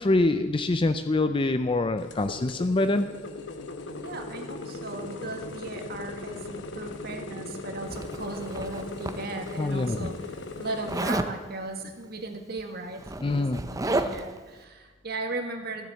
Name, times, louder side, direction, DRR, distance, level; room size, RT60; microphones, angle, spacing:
voice 1, 0.0-3.1 9.6-10.1 13.2-13.6, left 2 dB, 25° left, 10 dB, 0.5 m, -25 dB
sound 1, 0.6-5.7, left 4 dB, 45° left, 2.6 m, -55 dB
sound 2, 2.0-11.1, left 3 dB, 65° left, 1.1 m, -39 dB
voice 2, 4.0-10.1 10.6-15.9, right 2 dB, 55° right, 4 dB, 1.8 m, -37 dB
Zipper (clothing), 7.9-9.6 10.9-11.4 12.5-12.6 12.9-14.4, right 2 dB, 20° right, 0.7 m, -31 dB
15.5 x 7.7 x 7.6 m, 1.4 s
head